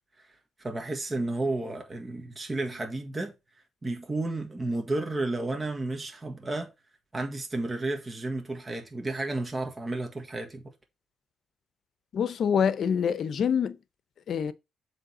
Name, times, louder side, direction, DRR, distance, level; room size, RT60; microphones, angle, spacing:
voice 1, 0.6-3.3 3.8-6.7 7.1-10.6, right 2 dB, 25° right, 1.7 m, -32 dB
voice 2, 12.1-13.8 14.3-14.5, left 7 dB, 60° left, 0.8 m, -25 dB
7.6 x 3.5 x 6.2 m
cardioid pair, 90°, 0 cm